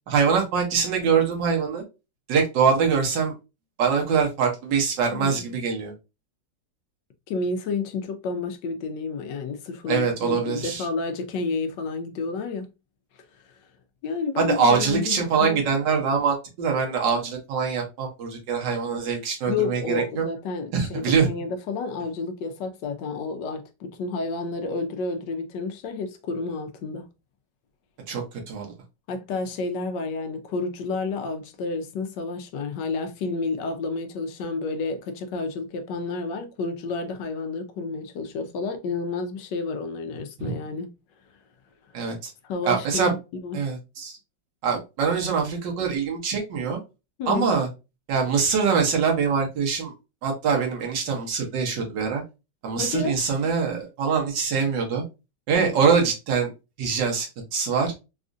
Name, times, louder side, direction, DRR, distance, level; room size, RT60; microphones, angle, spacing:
voice 1, 0.1-1.8 2.3-3.3 3.8-5.9 9.9-10.9 14.4-20.2 20.7-21.3 28.1-28.7 40.4-40.6 41.9-42.3 42.6-43.1 43.5-44.2 44.6-46.8 47.3-47.7 48.1-49.9 50.2-52.2 52.6-55.0 55.5-56.5 56.8-57.9, right 6 dB, 75° right, 1.6 m, -24 dB
voice 2, 7.3-12.7 14.0-15.6 19.5-27.0 29.1-40.9 42.4-43.2 43.4-43.6 47.2-47.5 52.8-53.2 55.6-55.7, left 4 dB, 75° left, 1.2 m, -30 dB
4.1 x 2.4 x 2.5 m
omnidirectional pair, 2.0 m